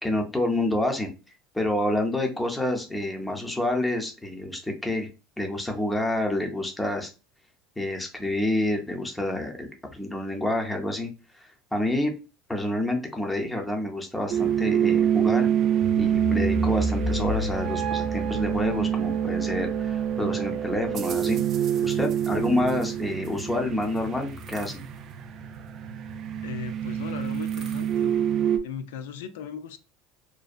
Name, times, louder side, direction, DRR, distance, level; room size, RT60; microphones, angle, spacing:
voice 1, 0.0-1.1 1.5-5.1 5.4-7.1 7.8-11.1 11.3-12.1 12.5-15.5 16.0-21.4 21.8-24.8, left 1 dB, 5° left, 2 dB, 0.5 m, -28 dB
sound 1, 14.3-28.6, right 8 dB, 45° right, 0.3 m, -26 dB
voice 2, 26.4-28.1 28.6-29.8, left 7 dB, 90° left, 10 dB, 0.3 m, -37 dB
2.6 x 2.1 x 2.4 m, 0.31 s
supercardioid pair, 120°, 0 cm